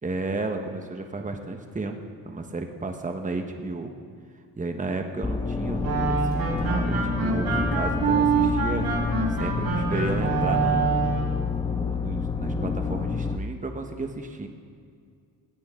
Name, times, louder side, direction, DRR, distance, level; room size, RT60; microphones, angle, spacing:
voice 1, 0.0-2.0 2.2-3.9 4.6-10.9 11.5-14.5, right 3 dB, 20° right, 4 dB, 1.3 m, -33 dB
sound 1, 5.2-13.4, left 4 dB, 10° left, 0.5 m, -28 dB
sound 2, 5.8-11.4, right 5 dB, 60° right, 3.5 m, -26 dB
19.5 x 16.0 x 3.8 m, 2.2 s
cardioid pair, 90°, 40 cm